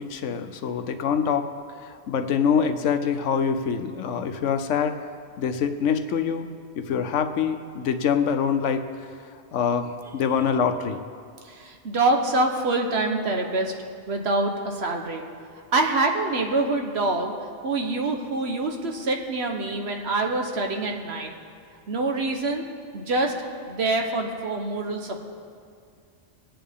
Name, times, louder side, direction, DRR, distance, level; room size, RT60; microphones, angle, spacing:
voice 1, 0.0-1.5 1.9-5.0 5.4-6.5 6.8-8.8 9.5-11.0, left 7 dB, 90° left, 8 dB, 1.1 m, -25 dB
voice 2, 11.4-13.7 14.1-15.2 15.7-17.3 17.6-21.3 21.9-22.7 22.9-23.3 23.7-25.2, right 2 dB, 65° right, 3 dB, 1.3 m, -25 dB
20.5 x 8.9 x 3.6 m, 2.2 s
omnidirectional pair, 1.2 m